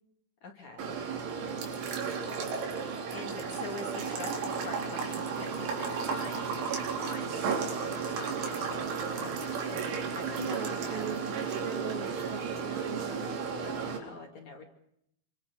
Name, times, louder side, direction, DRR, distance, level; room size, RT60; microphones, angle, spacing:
voice 1, 0.4-0.9 3.1-8.8 9.1-11.1 13.6-14.7, left 2 dB, 45° left, 2 dB, 3.0 m, -45 dB
sound 1, 0.8-14.0, right 5 dB, 85° right, 6.2 m, -33 dB
voice 2, 10.3-13.3, right 6 dB, 45° right, 5 dB, 1.6 m, -40 dB
26.5 x 25.0 x 6.4 m, 0.74 s
omnidirectional pair, 5.4 m